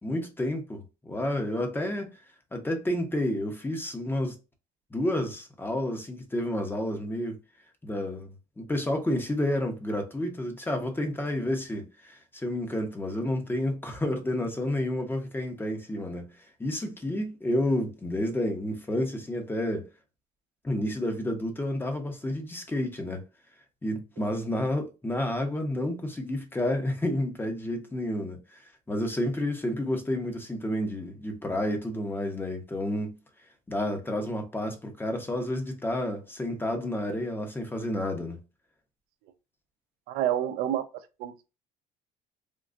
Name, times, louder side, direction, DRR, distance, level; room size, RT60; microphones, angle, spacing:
voice 1, 0.0-2.1 2.5-4.4 4.9-7.4 7.8-8.3 8.6-19.9 20.6-23.2 23.8-33.2 33.7-38.4, left 1 dB, 15° left, 0.9 m, -30 dB
voice 2, 40.1-40.9 41.2-41.5, right 11 dB, 80° right, 0.5 m, -28 dB
3.7 x 2.3 x 2.5 m
cardioid pair, 105°, 16 cm